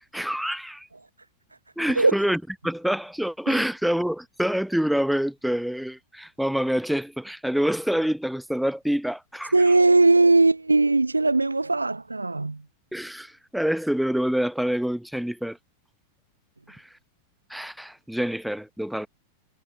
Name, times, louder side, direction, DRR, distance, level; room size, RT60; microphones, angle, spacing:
voice 1, 0.1-0.9 1.8-9.5 12.9-15.6 16.7-16.9 17.5-19.1, equal, ahead, 0.9 m, -26 dB
voice 2, 9.5-12.6, right 3 dB, 80° right, 0.8 m, -19 dB
figure-of-eight pair, 90°, 0 cm